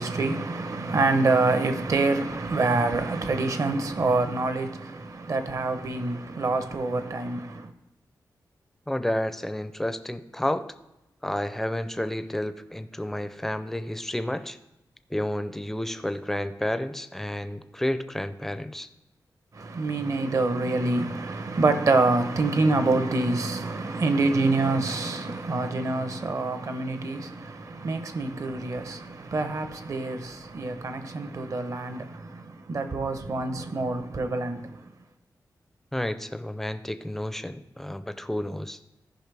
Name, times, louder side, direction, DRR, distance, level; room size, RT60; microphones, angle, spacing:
voice 1, 0.0-7.7 19.5-34.8, right 3 dB, 50° right, 0.8 m, -26 dB
voice 2, 8.9-10.7 11.2-14.6 15.1-18.9 35.9-38.8, left 1 dB, 5° left, 0.4 m, -30 dB
14.0 x 5.4 x 3.4 m
wide cardioid pair, 125°, 7 cm